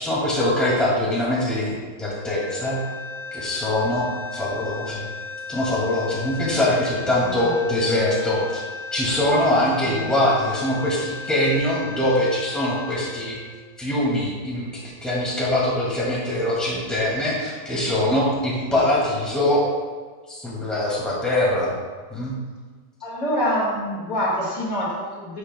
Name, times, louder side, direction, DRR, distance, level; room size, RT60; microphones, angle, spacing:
voice 1, 0.0-2.8 3.3-5.1 5.5-8.6 8.9-13.4 13.8-19.7 20.3-21.7 22.1-22.4, left 1 dB, ahead, -7 dB, 2.0 m, -23 dB
sound 1, 2.1-14.3, left 4 dB, 80° left, 0.4 m, -36 dB
voice 2, 23.0-25.4, equal, 60° left, -5 dB, 2.4 m, -26 dB
12.0 x 6.5 x 2.2 m, 1.5 s
omnidirectional pair, 1.7 m